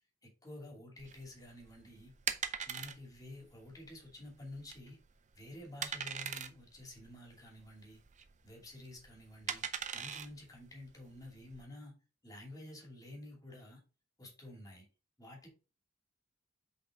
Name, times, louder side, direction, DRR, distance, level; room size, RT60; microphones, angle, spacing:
voice 1, 0.2-2.1 2.6-5.0 5.3-8.0 8.4-9.6 9.9-12.0 12.2-13.8 14.2-14.8 15.2-15.5, left 1 dB, 20° left, 2.5 m, -50 dB
sound 1, 1.0-11.6, right 7 dB, 35° right, 0.5 m, -42 dB
5.8 x 5.3 x 3.7 m
head